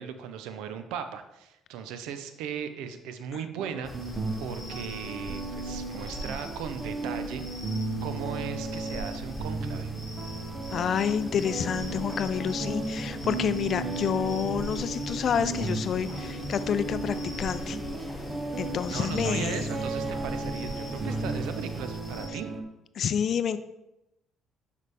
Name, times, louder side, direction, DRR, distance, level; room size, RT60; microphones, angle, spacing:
voice 1, 0.0-4.1 4.4-7.4 8.0-9.9 18.9-22.5, right 7 dB, 80° right, 9 dB, 0.6 m, -37 dB
sound 1, 3.6-22.6, right 3 dB, 45° right, 0.9 m, -35 dB
sound 2, 3.8-22.3, equal, 5° left, 2.1 m, -42 dB
voice 2, 10.7-17.8 18.6-19.6 23.0-23.6, left 8 dB, 55° left, 13 dB, 0.4 m, -29 dB
sound 3, 10.9-21.9, equal, 10° right, 2.4 m, -39 dB
6.5 x 5.1 x 3.4 m, 0.90 s
hypercardioid pair, 60°, 0 cm